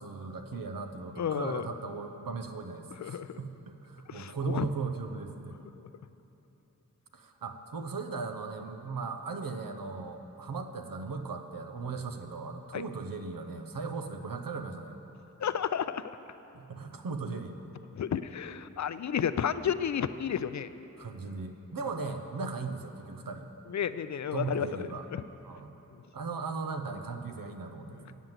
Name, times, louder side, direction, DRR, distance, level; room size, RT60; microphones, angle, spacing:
voice 1, 0.0-5.6 7.1-14.9 16.5-17.6 21.0-23.5 24.3-25.1 25.4-25.7 26.1-28.2, right 4 dB, 85° right, 6 dB, 0.8 m, -37 dB
voice 2, 1.2-1.7 3.0-3.4 4.1-4.7 12.7-12.8 15.4-16.0 18.0-20.7 23.7-25.2, left 8 dB, 55° left, 13 dB, 0.4 m, -32 dB
9.2 x 7.3 x 7.9 m, 3.0 s
wide cardioid pair, 60°, 33 cm